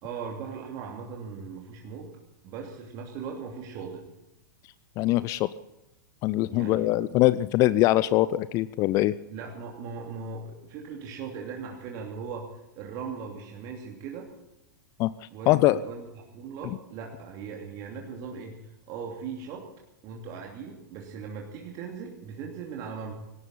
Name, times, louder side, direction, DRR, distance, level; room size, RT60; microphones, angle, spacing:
voice 1, 0.0-2.2 2.4-4.1 6.5-7.1 9.3-14.3 15.3-16.1 16.3-19.7 20.0-23.1, right 5 dB, 35° right, 1 dB, 2.8 m, -39 dB
voice 2, 5.0-5.5 6.2-9.1 15.0-15.1 15.5-15.8, left 16 dB, 30° left, 17 dB, 0.5 m, -22 dB
19.0 x 17.5 x 4.2 m, 0.92 s
figure-of-eight pair, 100°, 10 cm